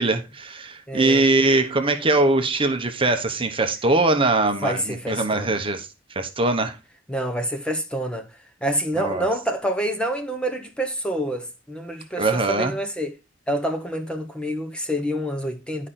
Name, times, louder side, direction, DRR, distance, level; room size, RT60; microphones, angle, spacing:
voice 1, 0.0-6.8 9.0-9.3 12.2-12.7, right 2 dB, 25° right, 1.0 m, -22 dB
voice 2, 0.9-1.2 4.6-5.6 7.1-8.3 8.6-13.1 13.5-15.9, equal, 5° left, 1.0 m, -27 dB
10.5 x 5.1 x 4.3 m
head